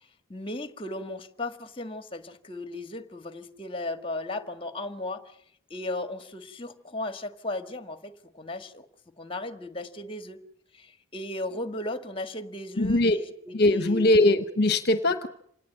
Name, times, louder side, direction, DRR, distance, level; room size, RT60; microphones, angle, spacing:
voice 1, 0.3-5.3 5.7-8.8 9.2-10.4 10.7-14.0, left 2 dB, 25° left, 10 dB, 1.6 m, -36 dB
voice 2, 12.8-13.2 13.5-15.3, left 2 dB, 50° left, 11 dB, 1.0 m, -21 dB
26.5 x 18.5 x 8.9 m, 0.69 s
head